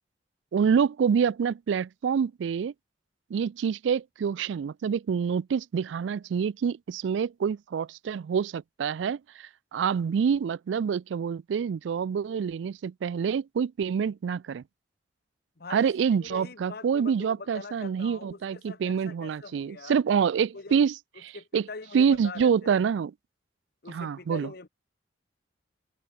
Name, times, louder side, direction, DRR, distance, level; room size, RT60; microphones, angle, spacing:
voice 1, 0.5-2.7 3.3-14.6 15.7-20.9 21.2-21.7 21.9-23.1 23.9-24.5, right 7 dB, 80° right, 0.3 m, -27 dB
voice 2, 15.6-15.9 16.2-20.0 20.5-20.8 21.3-22.8 23.8-24.7, left 3 dB, 55° left, 1.1 m, -42 dB
head